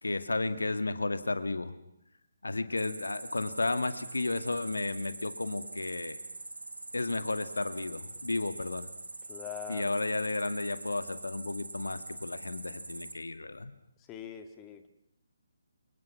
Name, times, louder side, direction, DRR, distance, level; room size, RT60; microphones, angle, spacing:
voice 1, 0.0-1.8 2.4-6.2 6.9-8.9 9.7-13.7, left 2 dB, 75° left, 10 dB, 2.1 m, -33 dB
Cricket, 2.8-13.1, right 2 dB, 75° right, 4.1 m, -44 dB
voice 2, 9.3-9.9 14.1-14.9, left 10 dB, 20° left, 7 dB, 2.0 m, -42 dB
28.5 x 28.0 x 6.1 m, 0.77 s
figure-of-eight pair, 140°, 0 cm